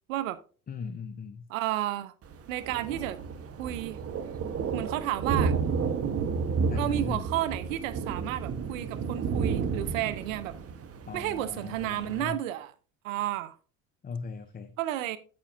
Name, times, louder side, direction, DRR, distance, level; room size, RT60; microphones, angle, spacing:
voice 1, 0.7-1.4 6.7-7.2 11.1-12.4 14.0-14.7, left 5 dB, 25° left, 0.7 m, -39 dB
voice 2, 1.5-2.1 2.5-3.2 3.6-4.0 4.7-5.5 6.7-10.6 11.1-12.7 13.0-13.6 14.8-15.2, right 13 dB, 75° right, 0.7 m, -32 dB
Thunder, 2.2-12.2, right 5 dB, 35° right, 1.1 m, -32 dB
8.6 x 8.6 x 2.6 m
hypercardioid pair, 70°, 39 cm